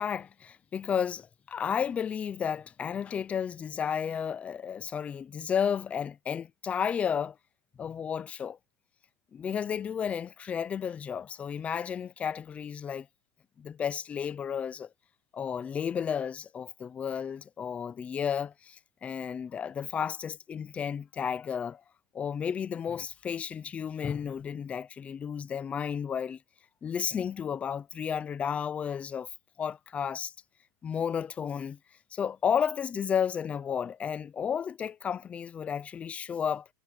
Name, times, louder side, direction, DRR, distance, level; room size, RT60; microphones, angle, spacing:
voice 1, 0.0-7.4 7.8-8.6 9.3-13.1 13.6-14.9 15.3-21.8 22.1-26.4 26.8-29.3 29.6-30.3 30.8-31.8 32.1-36.7, left 7 dB, 10° left, 0.4 m, -32 dB
supercardioid pair, 180°, 13 cm